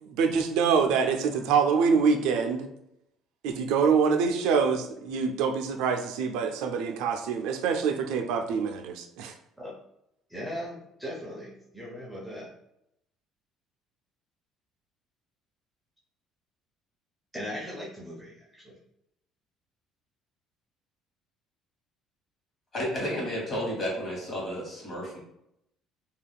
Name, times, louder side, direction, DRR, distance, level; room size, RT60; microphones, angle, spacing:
voice 1, 0.0-2.7 3.4-9.3, right 5 dB, 80° right, 5 dB, 0.3 m, -25 dB
voice 2, 1.0-1.5 9.6-9.7 10.3-12.5 17.3-18.8, equal, 5° right, -4 dB, 0.5 m, -39 dB
voice 3, 22.7-25.2, equal, 30° left, -4 dB, 1.1 m, -32 dB
2.3 x 2.2 x 3.4 m, 0.79 s
cardioid pair, 170°, 0 cm